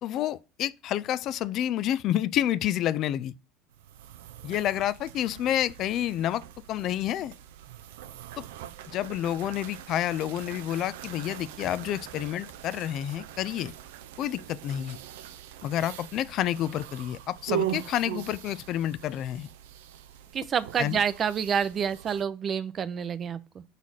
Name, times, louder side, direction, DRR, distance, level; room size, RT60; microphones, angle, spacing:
voice 1, 0.0-3.3 4.4-6.4 6.7-7.3 8.4-8.5 8.9-13.7 14.2-15.0 15.6-19.5 20.8-21.0, left 12 dB, 55° left, 0.3 m, -29 dB
sound 1, 3.7-22.2, right 11 dB, 85° right, 0.4 m, -41 dB
voice 2, 20.3-23.6, right 7 dB, 35° right, 0.6 m, -28 dB
4.7 x 4.1 x 5.6 m
supercardioid pair, 100°, 0 cm